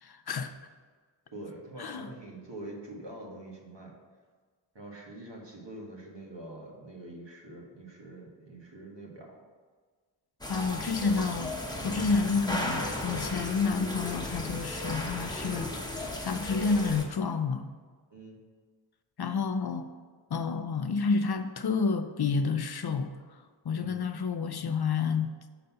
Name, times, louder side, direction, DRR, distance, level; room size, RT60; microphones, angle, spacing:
voice 1, 0.0-0.5 1.8-2.1 10.5-11.5 11.8-15.7 16.2-17.7 19.2-19.9 20.3-23.1 23.7-25.3, left 4 dB, 55° left, 9 dB, 0.5 m, -29 dB
voice 2, 1.3-4.0 4.7-9.4 18.1-18.4 23.7-24.1, right 1 dB, 65° right, -1 dB, 1.5 m, -45 dB
sound 1, 10.4-17.1, left 1 dB, 10° left, 1.0 m, -35 dB
6.5 x 4.0 x 5.6 m, 1.5 s
wide cardioid pair, 50°, 46 cm